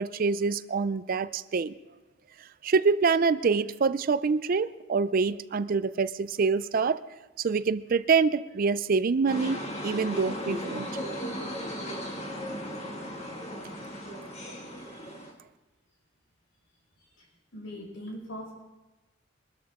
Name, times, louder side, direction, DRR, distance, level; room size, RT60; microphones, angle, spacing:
voice 1, 0.0-1.8 2.6-7.0 7.4-10.9, right 4 dB, 45° right, 15 dB, 0.4 m, -26 dB
sound 1, 9.3-15.3, equal, 35° left, 2.0 m, -36 dB
voice 2, 17.5-18.5, left 1 dB, 80° left, -1 dB, 5.6 m, -40 dB
22.5 x 13.0 x 3.6 m, 1.1 s
head